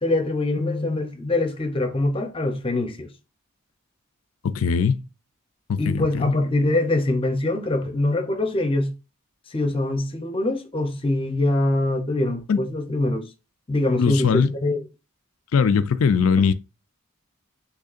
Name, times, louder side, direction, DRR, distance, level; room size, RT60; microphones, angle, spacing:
voice 1, 0.0-3.1 5.8-8.9 9.5-13.2 13.7-14.8, left 2 dB, 25° left, 0.8 m, -23 dB
voice 2, 4.4-5.0 5.7-6.3 12.5-12.6 14.0-14.5 15.5-16.5, left 6 dB, 80° left, 0.4 m, -20 dB
6.4 x 3.2 x 2.5 m
head